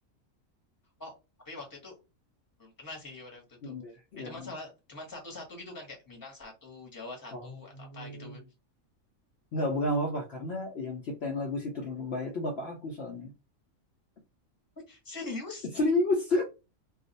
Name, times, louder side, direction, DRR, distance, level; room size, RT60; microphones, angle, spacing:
voice 1, 1.4-2.0 2.6-3.7 4.2-8.4 14.9-15.7, left 3 dB, 15° left, 1.0 m, -43 dB
voice 2, 3.6-4.5 7.3-7.5 7.8-8.4 9.5-13.3 15.7-16.4, left 2 dB, 60° left, 0.8 m, -31 dB
2.4 x 2.3 x 3.9 m
omnidirectional pair, 1.4 m